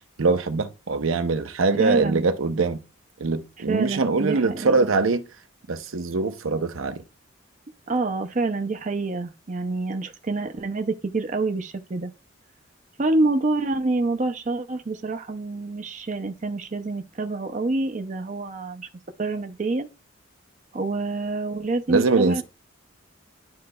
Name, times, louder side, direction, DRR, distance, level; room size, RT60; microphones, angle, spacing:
voice 1, 0.2-2.8 3.2-5.2 5.7-7.0 21.9-22.4, right 4 dB, 85° right, 0.7 m, -23 dB
voice 2, 1.8-2.2 3.7-4.9 7.9-12.1 13.0-18.9 19.2-19.9 20.7-22.4, right 3 dB, 35° right, 0.5 m, -27 dB
11.5 x 3.8 x 2.3 m
head